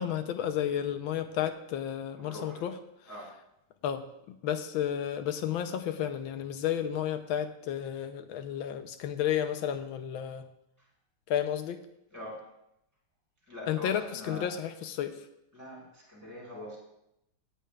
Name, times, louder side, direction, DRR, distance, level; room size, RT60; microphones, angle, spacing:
voice 1, 0.0-2.8 3.8-10.5 11.3-11.8 13.7-15.2, left 10 dB, 75° left, 9 dB, 1.5 m, -32 dB
voice 2, 2.3-2.6 3.1-3.3 12.1-12.4 13.5-14.5 15.5-16.8, left 1 dB, 10° right, -4 dB, 4.0 m, -43 dB
17.0 x 9.0 x 2.4 m, 0.81 s
omnidirectional pair, 2.3 m